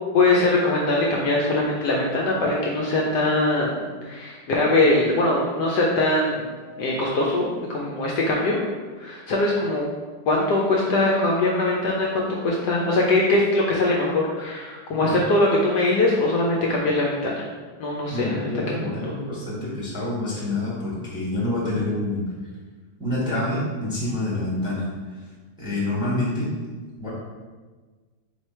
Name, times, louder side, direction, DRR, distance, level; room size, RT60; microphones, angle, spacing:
voice 1, 0.1-6.5 6.8-8.6 9.0-9.8 10.3-17.5 17.8-18.5 18.8-19.1, left 2 dB, 70° left, -3 dB, 1.0 m, -22 dB
voice 2, 18.1-22.3 23.0-24.8 25.6-26.5 27.0-27.1, left 1 dB, 5° right, -7 dB, 1.0 m, -27 dB
3.3 x 3.2 x 4.2 m, 1.4 s
omnidirectional pair, 2.0 m